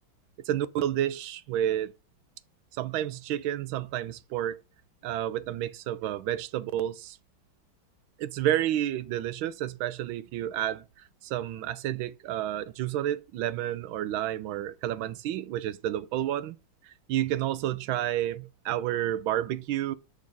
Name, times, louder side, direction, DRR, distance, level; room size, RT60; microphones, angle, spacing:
voice 1, 0.5-1.9 2.7-4.6 5.0-7.2 8.2-10.8 11.2-16.6 16.8-19.9, right 12 dB, 90° right, 1.4 m, -30 dB
6.6 x 5.2 x 5.0 m
omnidirectional pair, 2.2 m